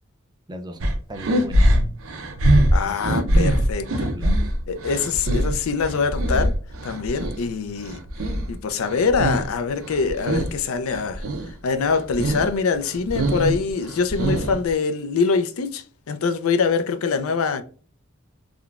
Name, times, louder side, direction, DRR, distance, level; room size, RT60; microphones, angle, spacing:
voice 1, 0.5-0.8 1.1-1.9 2.8-3.0 3.6-3.7 3.9-4.5, equal, 20° right, 0.4 m, -37 dB
sound 1, 0.8-7.4 7.8-9.6 9.8-10.6 10.9-11.5 11.9-12.5 12.8-14.7, right 1 dB, 75° right, 0.6 m, -22 dB
voice 2, 2.7-4.1 4.7-6.5 6.8-8.0 8.5-11.2 11.6-17.6, left 5 dB, 90° left, 0.4 m, -24 dB
3.6 x 2.2 x 2.4 m
head